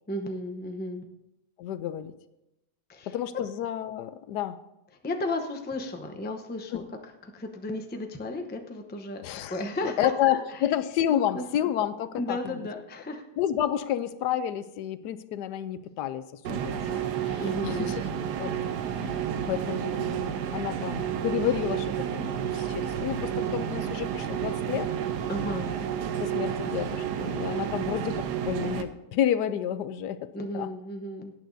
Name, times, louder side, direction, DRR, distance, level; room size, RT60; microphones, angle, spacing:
voice 1, 0.1-1.1 2.9-3.1 5.0-6.8 7.2-9.2 9.5-10.7 11.1-11.7 12.2-13.2 17.4-17.9 25.3-25.7 30.3-31.3, left 1 dB, 15° left, 4 dB, 0.4 m, -34 dB
voice 2, 1.6-2.1 3.1-4.6 6.7-6.8 9.2-9.6 9.8-12.6 13.4-18.0 18.4-18.6 18.9-24.9 26.2-30.7, left 10 dB, 80° left, 13 dB, 1.2 m, -30 dB
sound 1, 16.4-28.8, right 9 dB, 80° right, 1.3 m, -31 dB
17.5 x 9.2 x 2.7 m, 0.92 s
omnidirectional pair, 1.8 m